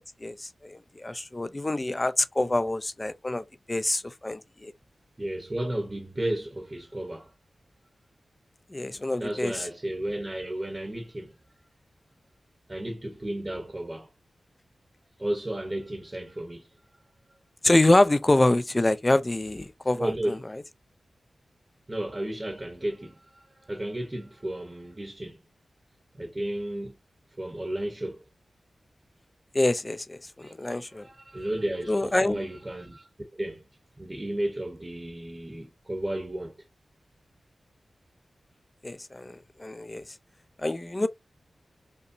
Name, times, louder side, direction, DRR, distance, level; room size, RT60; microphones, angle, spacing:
voice 1, 0.2-4.7 8.7-9.6 17.6-20.4 29.5-31.1 31.9-32.4 38.8-40.0 40.6-41.1, left 2 dB, 20° left, 0.3 m, -26 dB
voice 2, 5.2-7.3 9.2-11.3 12.7-14.1 15.2-16.7 19.9-20.4 21.9-25.4 26.1-26.9 27.4-28.2 30.4-30.5 30.9-33.1 33.4-33.6 34.0-36.5, right 1 dB, 25° right, 0.8 m, -33 dB
5.2 x 2.0 x 2.5 m
wide cardioid pair, 95°, 0 cm